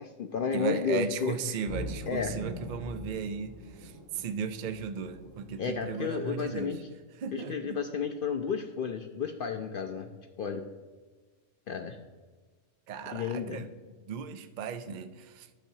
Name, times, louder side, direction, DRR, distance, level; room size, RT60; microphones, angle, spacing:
voice 1, 0.0-1.6 2.1-2.3 5.6-6.8 7.3-10.1 10.4-10.6 11.7-12.0 13.1-13.6, left 6 dB, 75° left, 5 dB, 0.5 m, -32 dB
voice 2, 0.5-6.8 7.2-7.8 12.9-13.7 14.0-15.5, right 6 dB, 70° right, 9 dB, 0.4 m, -36 dB
sound 1, 1.7-6.7, equal, 25° right, 2.0 m, -43 dB
12.0 x 6.8 x 2.7 m, 1.4 s
omnidirectional pair, 1.5 m